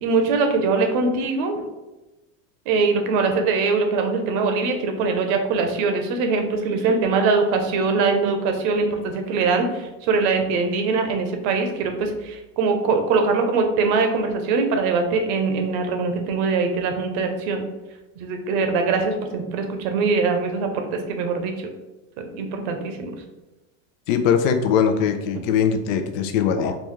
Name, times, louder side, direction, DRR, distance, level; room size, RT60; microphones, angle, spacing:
voice 1, 0.0-1.6 2.7-17.6 18.2-21.7 22.2-23.1, right 4 dB, 55° right, 5 dB, 0.7 m, -22 dB
voice 2, 24.1-26.8, left 7 dB, 75° left, 7 dB, 0.6 m, -21 dB
4.0 x 2.3 x 3.1 m, 1.1 s
supercardioid pair, 140°, 39 cm